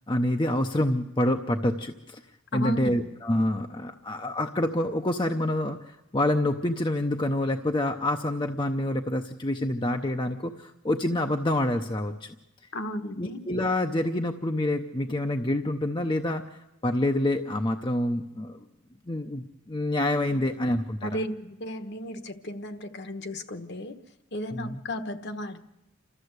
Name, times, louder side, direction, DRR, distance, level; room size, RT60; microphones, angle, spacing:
voice 1, 0.1-2.2 2.5-12.3 13.2-18.7 19.1-21.2 24.5-24.8, left 1 dB, 20° left, 5 dB, 0.7 m, -27 dB
voice 2, 2.5-3.1 12.7-13.4 21.0-24.0 24.3-25.6, equal, 50° left, 8 dB, 1.2 m, -34 dB
28.0 x 13.5 x 8.0 m, 0.98 s
head